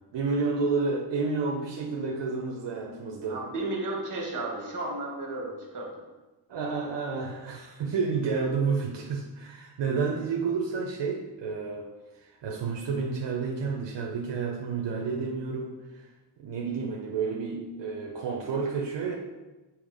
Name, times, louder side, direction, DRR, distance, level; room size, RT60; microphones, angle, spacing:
voice 1, 0.1-3.4 6.5-11.9 12.4-15.8 16.4-19.1, right 4 dB, 85° right, 0 dB, 0.8 m, -30 dB
voice 2, 3.3-5.9, right 2 dB, 45° right, -1 dB, 1.7 m, -33 dB
7.1 x 2.9 x 5.0 m, 1.1 s
wide cardioid pair, 160°, 42 cm